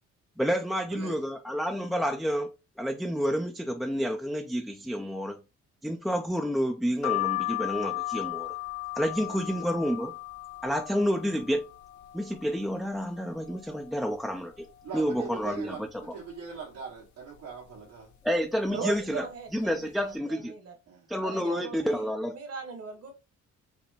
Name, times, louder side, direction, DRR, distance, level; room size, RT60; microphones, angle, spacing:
voice 1, 0.4-2.5 2.8-5.4 5.8-8.6 9.0-10.1 10.6-11.7 12.1-14.7 14.9-15.7 16.1-16.2 18.2-19.2 19.5-20.5 21.1-22.4, equal, ahead, 0.4 m, -29 dB
sound 1, 7.0-12.7 13.2-13.9 14.3-14.4 14.6-15.7 16.2-16.6 17.3-17.7 18.5-18.7 19.0-19.2, left 19 dB, 70° left, 0.6 m, -36 dB
voice 2, 14.8-18.1 18.7-18.8 20.9-21.1, right 5 dB, 80° right, 1.8 m, -41 dB
voice 3, 18.7-20.7 21.2-23.1, right 5 dB, 55° right, 1.5 m, -39 dB
5.1 x 2.2 x 3.4 m
cardioid pair, 90°, 30 cm